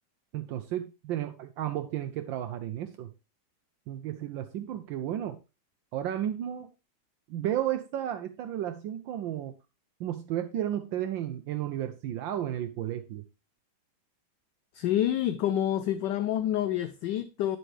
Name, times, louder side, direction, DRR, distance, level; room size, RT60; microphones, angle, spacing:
voice 1, 0.3-3.1 3.9-5.4 5.9-6.7 7.3-9.5 10.0-13.2, right 11 dB, 75° right, 1.3 m, -33 dB
voice 2, 14.7-17.6, left 11 dB, 70° left, 1.1 m, -28 dB
10.0 x 7.2 x 3.1 m
omnidirectional pair, 2.2 m